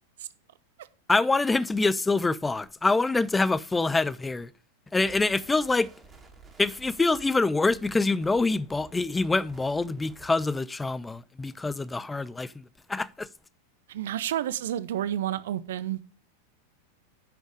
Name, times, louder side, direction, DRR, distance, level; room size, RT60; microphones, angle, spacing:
voice 1, 1.1-4.5 4.9-5.9 6.6-12.6 12.9-13.3, left 3 dB, 10° left, 0.5 m, -25 dB
sound 1, 5.0-10.5, right 3 dB, 10° right, 2.4 m, -53 dB
voice 2, 13.9-16.0, right 11 dB, 60° right, 0.8 m, -30 dB
10.0 x 6.3 x 5.1 m
figure-of-eight pair, 90°, 0 cm